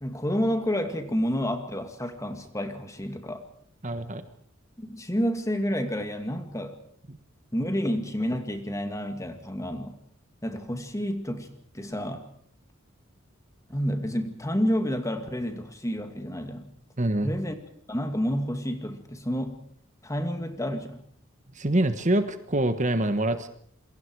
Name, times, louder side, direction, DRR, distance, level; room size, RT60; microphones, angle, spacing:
voice 1, 0.0-3.4 4.8-6.8 7.5-10.0 10.4-11.5 11.7-12.3 13.7-16.7 17.2-17.6 17.9-19.6 20.0-21.0, equal, 15° left, 7 dB, 2.3 m, -29 dB
voice 2, 3.8-4.2 7.1-7.2 17.0-17.3 21.5-23.5, right 1 dB, 35° right, 9 dB, 1.4 m, -25 dB
27.5 x 23.0 x 4.8 m, 0.62 s
head